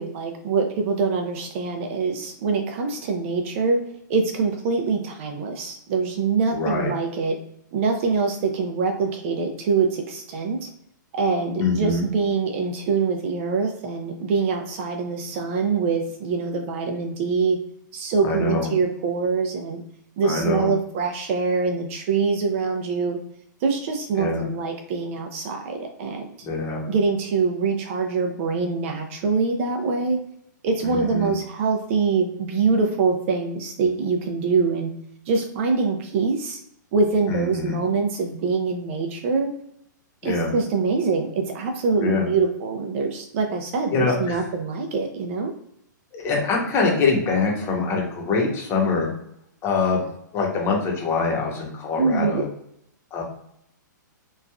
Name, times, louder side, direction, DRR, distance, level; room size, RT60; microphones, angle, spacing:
voice 1, 0.0-3.8 4.1-7.3 7.7-10.7 11.1-17.6 17.9-19.8 20.2-23.2 23.6-26.3 26.9-30.2 30.6-34.9 35.3-36.6 36.9-39.5 40.2-45.5 52.0-52.4, right 4 dB, 40° right, 4 dB, 0.5 m, -24 dB
voice 2, 6.5-6.9 11.6-12.0 18.2-18.7 20.2-20.7 24.2-24.4 26.4-26.8 30.8-31.3 37.3-37.7 40.2-40.5 42.0-42.3 43.9-44.5 46.1-49.1 49.6-50.0 50.3-52.5 53.1-53.2, left 4 dB, 25° left, -1 dB, 0.9 m, -24 dB
3.0 x 2.4 x 2.3 m, 0.74 s
hypercardioid pair, 145°, 10 cm